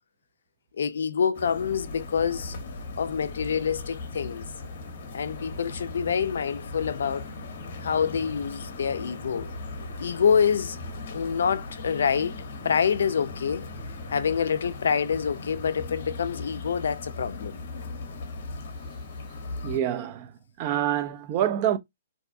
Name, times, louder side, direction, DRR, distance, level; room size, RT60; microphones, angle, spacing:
voice 1, 0.8-2.6 3.0-4.5 5.1-7.3 7.8-9.5 10.0-10.8 11.1-12.4 12.6-13.6 14.1-17.6, left 7 dB, 80° left, 0.3 m, -26 dB
sound 1, 1.3-19.8, left 2 dB, 50° left, 0.8 m, -38 dB
voice 2, 19.6-20.3 20.6-21.8, right 11 dB, 30° right, 0.3 m, -26 dB
2.6 x 2.1 x 2.5 m
hypercardioid pair, 170°, 0 cm